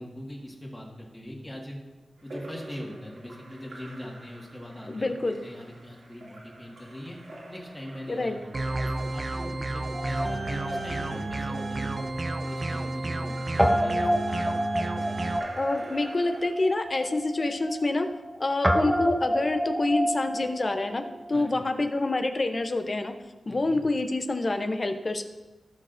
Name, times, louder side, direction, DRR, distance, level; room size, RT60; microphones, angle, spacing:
voice 1, 0.0-1.8 2.2-7.2 7.5-11.9 12.3-14.5 15.0-15.2 21.3-21.5 23.5-23.8, equal, 15° left, -2 dB, 1.8 m, -42 dB
Splash splatter / Drip / Trickle dribble, 2.2-16.5, right 1 dB, 70° right, 2.6 m, -47 dB
voice 2, 4.9-5.3 8.1-8.3 15.6-18.1 18.4-21.0 21.3-23.1 23.5-25.2, left 2 dB, 35° left, 7 dB, 0.7 m, -27 dB
sound 1, 8.5-15.4, right 2 dB, 40° right, 0.6 m, -31 dB
Guitar, 9.9-12.4 12.6-12.7 13.6-21.4, equal, 5° right, 0.8 m, -29 dB
17.0 x 6.5 x 2.6 m, 1.1 s
wide cardioid pair, 125°, 0 cm